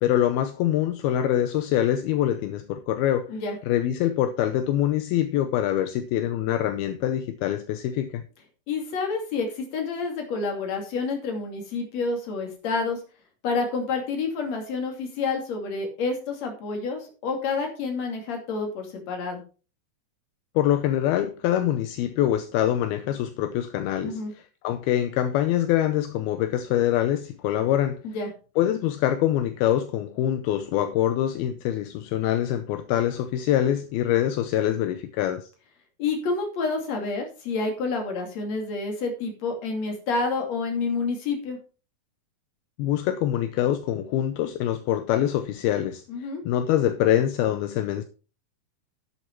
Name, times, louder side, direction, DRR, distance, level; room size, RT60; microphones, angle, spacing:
voice 1, 0.0-3.3 3.7-8.2 20.6-24.2 24.6-28.0 28.6-35.5 42.8-46.0 46.5-48.0, left 11 dB, 80° left, 2.5 m, -24 dB
voice 2, 8.7-13.0 13.4-19.4 24.0-24.3 28.0-28.3 36.0-41.6 46.1-46.4, left 4 dB, 45° left, 3.4 m, -29 dB
10.5 x 8.4 x 4.6 m
omnidirectional pair, 4.5 m